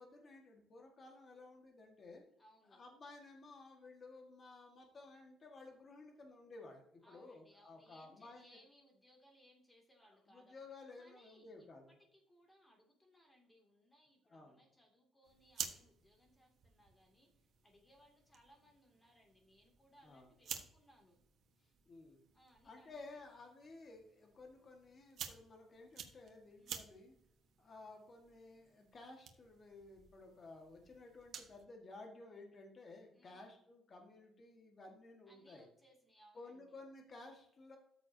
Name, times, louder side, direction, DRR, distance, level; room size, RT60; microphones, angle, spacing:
voice 1, 0.0-2.2 2.7-8.6 10.3-11.9 14.3-14.6 20.0-20.3 21.6-22.2 22.6-27.1 27.6-35.6 36.3-37.8, left 3 dB, 30° left, 2 dB, 1.7 m, -55 dB
voice 2, 2.4-2.8 7.0-10.5 11.0-21.2 22.3-23.2 26.6-26.9 33.1-33.6 35.3-36.8, equal, 10° left, 1 dB, 2.5 m, -68 dB
sound 1, 15.2-31.6, right 8 dB, 55° right, 1.3 m, -53 dB
13.5 x 6.9 x 2.8 m, 0.71 s
cardioid pair, 145°, 0 cm